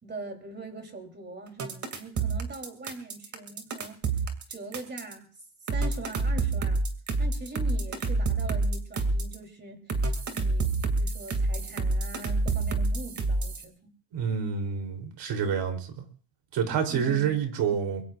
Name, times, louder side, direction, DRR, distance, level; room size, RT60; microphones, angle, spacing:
voice 1, 0.0-4.0 4.5-5.2 5.7-6.8 7.2-10.0 10.3-13.9 16.9-17.4, right 3 dB, 25° right, 4 dB, 3.4 m, -42 dB
sound 1, 1.6-5.1 5.7-9.4 9.9-13.6, right 3 dB, 40° right, 2.5 m, -27 dB
voice 2, 14.1-16.0 16.5-18.0, right 7 dB, 75° right, 4 dB, 3.6 m, -28 dB
23.5 x 23.0 x 2.5 m, 0.41 s
cardioid pair, 130°, 44 cm